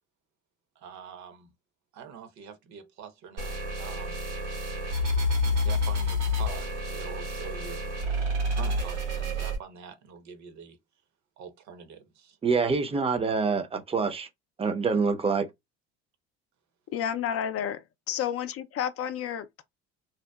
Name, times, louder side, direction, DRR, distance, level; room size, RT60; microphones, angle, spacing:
voice 1, 0.8-1.5 1.9-4.2 5.4-7.9 8.5-10.8 11.4-12.4, right 7 dB, 55° right, 0.8 m, -45 dB
sound 1, 3.4-9.6, left 1 dB, 90° right, 1.5 m, -29 dB
voice 2, 12.4-14.3 14.6-15.5, right 4 dB, 15° right, 0.6 m, -26 dB
voice 3, 16.9-19.6, left 9 dB, 45° left, 0.4 m, -31 dB
2.8 x 2.1 x 2.2 m
hypercardioid pair, 75°, 35 cm